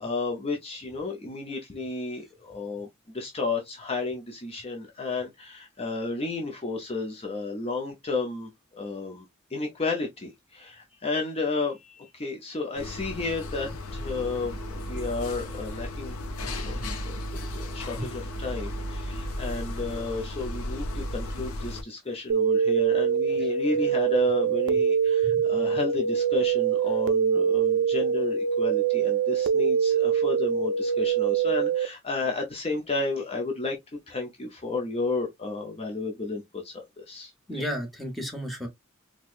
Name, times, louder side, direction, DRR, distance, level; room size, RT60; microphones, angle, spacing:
voice 1, 0.0-16.2 16.5-33.8 34.1-37.3, left 3 dB, 30° left, 0.7 m, -32 dB
sound 1, 12.8-21.8, left 1 dB, 75° left, 0.7 m, -34 dB
voice 2, 16.4-16.9 18.0-18.1 23.4-23.5 25.2-25.4 37.5-38.7, equal, ahead, 1.1 m, -34 dB
sound 2, 22.3-31.9, right 7 dB, 60° right, 0.4 m, -24 dB
4.5 x 2.2 x 2.5 m
head